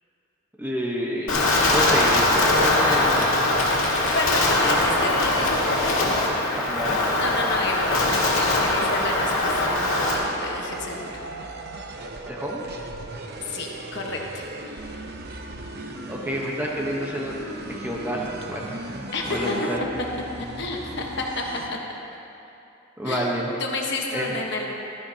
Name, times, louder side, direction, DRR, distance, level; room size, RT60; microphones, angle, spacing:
voice 1, 0.6-3.5 4.6-5.0 6.5-7.0 12.3-12.6 15.8-17.4 17.7-18.8 19.2-19.8 23.0-23.5 24.1-24.3, equal, 10° right, -3 dB, 1.0 m, -29 dB
Wind, 1.3-10.2, left 2 dB, 75° left, 2.3 m, -21 dB
voice 2, 4.1-5.6 7.1-11.2 13.4-14.4 19.1-19.5 20.4-21.4 23.0-24.7, left 3 dB, 55° left, -1 dB, 1.3 m, -30 dB
sound 1, 5.4-5.5 5.8-5.9 6.1-6.2 6.5-21.7, right 2 dB, 50° right, 0.8 m, -37 dB
16.5 x 13.0 x 2.9 m, 2.9 s
head